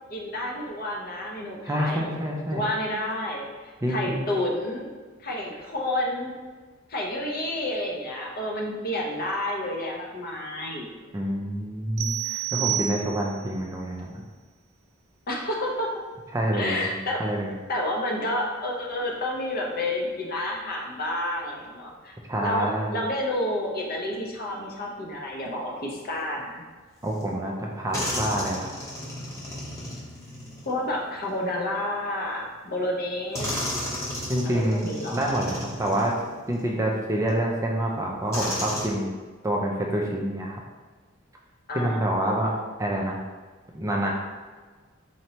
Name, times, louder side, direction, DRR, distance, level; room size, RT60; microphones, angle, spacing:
voice 1, 0.1-2.2 2.5-3.5 3.9-4.9 5.2-6.3 6.9-11.2 15.3-15.9 16.5-17.2 17.7-26.6 30.7-33.5 34.4-35.2 41.7-42.0, left 1 dB, 45° left, -1 dB, 0.7 m, -30 dB
voice 2, 1.6-2.6 3.8-4.2 11.1-14.2 16.3-17.5 22.3-23.0 27.0-28.7 34.3-36.1 36.5-39.1 39.4-40.6 41.7-42.5 42.8-43.2 43.7-44.1, right 1 dB, 15° right, -1 dB, 0.4 m, -27 dB
sound 1, 12.0-13.5, right 13 dB, 85° right, 0.4 m, -29 dB
sound 2, 27.2-27.3 27.9-31.6 32.5-32.6 33.3-36.7 37.3-37.4 38.3-38.9, left 1 dB, 15° left, 0.8 m, -34 dB
4.3 x 3.0 x 2.8 m, 1.4 s
head